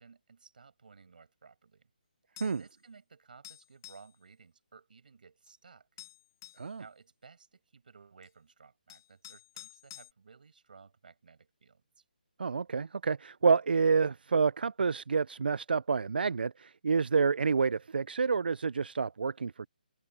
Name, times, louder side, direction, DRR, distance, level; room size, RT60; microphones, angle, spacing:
voice 1, 0.0-1.9 2.4-5.9 6.7-12.0, right 5 dB, 65° right, 7.9 m, -57 dB
sound 1, 2.4-2.7 3.4-4.1 5.5-5.6 6.0-6.7 8.2-8.3 8.9-10.1, left 13 dB, 25° left, 0.7 m, -50 dB
voice 2, 12.4-19.7, right 5 dB, 85° right, 0.3 m, -28 dB
hypercardioid pair, 165°, 5 cm